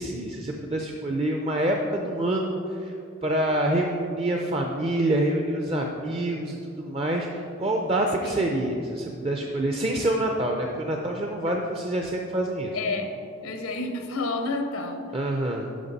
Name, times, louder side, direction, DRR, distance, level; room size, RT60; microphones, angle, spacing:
voice 1, 0.0-12.8 15.1-15.7, right 1 dB, 25° right, 1 dB, 0.5 m, -26 dB
voice 2, 12.7-13.2 13.4-15.0, left 3 dB, 85° left, 6 dB, 0.9 m, -30 dB
11.0 x 5.7 x 4.0 m, 2.6 s
head